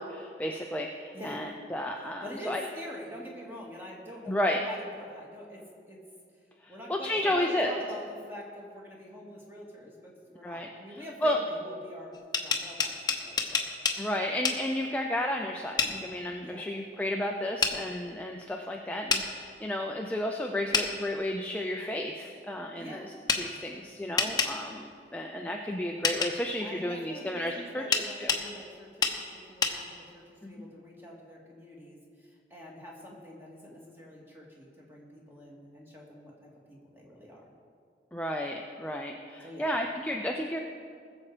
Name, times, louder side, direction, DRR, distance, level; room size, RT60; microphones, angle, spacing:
voice 1, 0.0-2.6 4.3-4.6 6.6-7.8 10.4-11.4 14.0-28.3 30.4-30.5 38.1-40.6, left 1 dB, 10° left, 1 dB, 0.5 m, -32 dB
voice 2, 1.1-1.5 2.2-6.0 6.7-13.7 16.3-16.7 22.8-23.1 24.2-24.5 26.6-37.5 39.4-39.7, equal, 15° right, -3 dB, 2.2 m, -45 dB
sound 1, 12.1-14.0 14.4-14.6 15.8-15.9 17.6-17.8 19.1-19.2 20.7-20.9 23.3-23.4 24.2-24.5 26.0-26.3 27.9-28.4 29.0-29.2 29.6-29.8, left 5 dB, 25° left, 0.9 m, -27 dB
20.0 x 7.2 x 5.0 m, 2.2 s
head